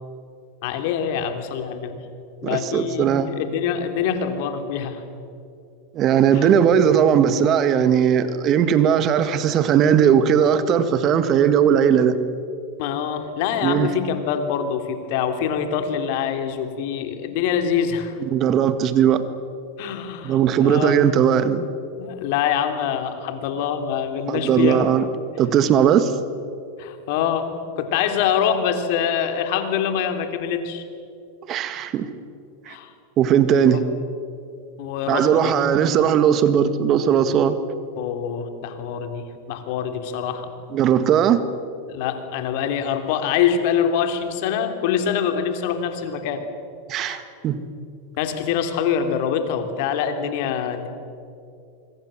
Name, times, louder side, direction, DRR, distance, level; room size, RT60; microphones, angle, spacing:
voice 1, 0.6-2.0 2.4-5.0 6.3-6.5 12.8-18.2 19.8-21.0 22.0-24.9 26.8-30.8 32.7-32.9 33.7-33.8 34.8-35.5 38.0-40.5 41.9-46.4 47.0-47.2 48.2-50.9, left 8 dB, 60° left, 7 dB, 3.1 m, -25 dB
voice 2, 2.4-3.3 5.9-12.2 13.6-13.9 18.3-19.2 20.2-21.7 24.3-25.0 25.4-26.1 31.5-32.1 32.7-32.8 33.2-33.8 35.1-37.6 40.7-41.4 46.9-47.6, right 8 dB, 40° right, 11 dB, 1.9 m, -18 dB
25.5 x 23.0 x 7.6 m, 2.5 s
hypercardioid pair, 100°, 0 cm